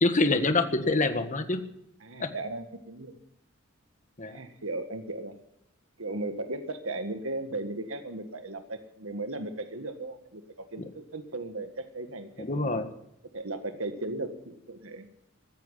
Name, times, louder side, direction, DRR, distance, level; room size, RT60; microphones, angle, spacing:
voice 1, 0.0-1.6 2.2-2.3 4.2-4.4 12.4-12.9, left 2 dB, 40° left, 8 dB, 1.7 m, -25 dB
voice 2, 2.0-3.2 4.2-5.4 6.0-12.8 13.3-15.1, right 2 dB, 75° right, 8 dB, 1.7 m, -36 dB
16.5 x 14.5 x 5.6 m, 0.79 s
head